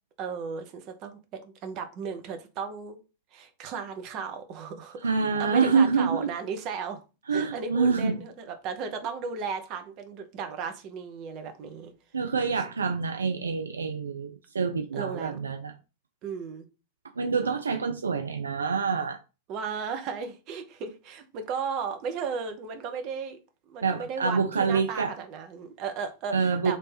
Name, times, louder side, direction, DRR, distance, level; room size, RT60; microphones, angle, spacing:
voice 1, 0.2-3.0 3.3-5.1 5.4-7.0 7.3-11.9 14.9-15.4 16.2-16.7 19.5-23.4 23.7-26.8, right 5 dB, 40° right, 0.7 m, -35 dB
voice 2, 5.0-6.3 7.3-8.2 12.1-15.7 17.2-19.2 23.8-25.1 26.3-26.8, right 5 dB, 75° right, 0.4 m, -26 dB
3.2 x 2.7 x 4.1 m
figure-of-eight pair, 90°, 0 cm